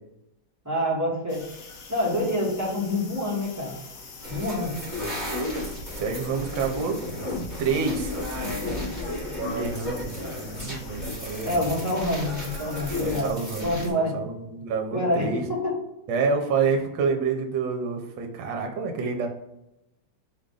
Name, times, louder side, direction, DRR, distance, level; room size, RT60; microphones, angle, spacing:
voice 1, 0.6-1.4 1.9-3.8 4.3-4.7 11.4-13.3 13.6-14.1 14.9-15.7, left 1 dB, 10° right, -6 dB, 1.0 m, -26 dB
sound 1, 1.3-13.7, left 4 dB, 60° left, 0.9 m, -46 dB
sound 2, 4.2-13.9, left 1 dB, 10° left, 0.9 m, -33 dB
voice 2, 5.9-7.0 7.6-8.1 9.5-10.1 10.4-11.7 13.0-13.6 13.9-15.5 16.1-19.3, right 5 dB, 70° right, 3 dB, 1.5 m, -28 dB
4.7 x 2.6 x 3.8 m, 0.86 s
omnidirectional pair, 2.2 m